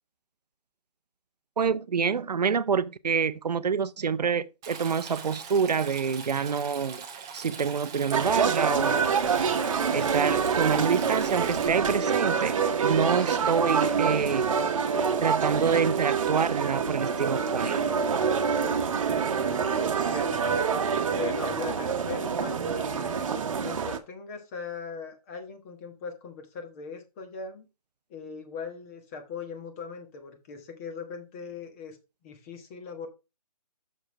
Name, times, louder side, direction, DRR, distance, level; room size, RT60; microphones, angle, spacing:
voice 1, 1.6-7.0 7.3-9.1 9.9-14.5 15.2-17.8, right 6 dB, 80° right, 0.6 m, -27 dB
Stream, 4.6-11.7, right 6 dB, 5° right, 0.3 m, -41 dB
sound 1, 8.1-24.0, right 6 dB, 50° right, 1.0 m, -26 dB
voice 2, 19.8-20.6 21.1-23.3 23.6-27.7 28.1-32.0 32.2-33.1, left 5 dB, 20° left, 1.3 m, -39 dB
6.5 x 5.0 x 4.7 m
hypercardioid pair, 155°, 21 cm